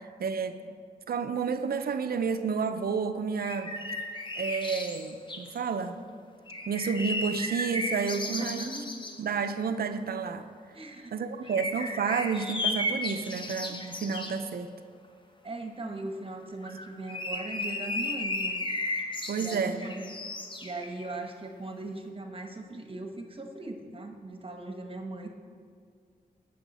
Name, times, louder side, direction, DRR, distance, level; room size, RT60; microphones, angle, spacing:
voice 1, 0.2-0.6 1.1-3.7 4.4-6.0 6.7-8.7 9.2-10.5 11.1-14.7 19.3-19.8, right 5 dB, 70° right, 9 dB, 0.6 m, -30 dB
sound 1, 3.4-5.6 6.5-9.2 11.5-14.4 16.6-21.2, left 2 dB, 30° left, 1.1 m, -34 dB
voice 2, 8.4-8.9 10.7-11.1 11.4-11.9 15.4-18.6 19.3-20.1 20.6-25.3, right 2 dB, 35° right, 3 dB, 1.1 m, -39 dB
16.5 x 6.4 x 4.2 m, 2.1 s
cardioid pair, 65°, 16 cm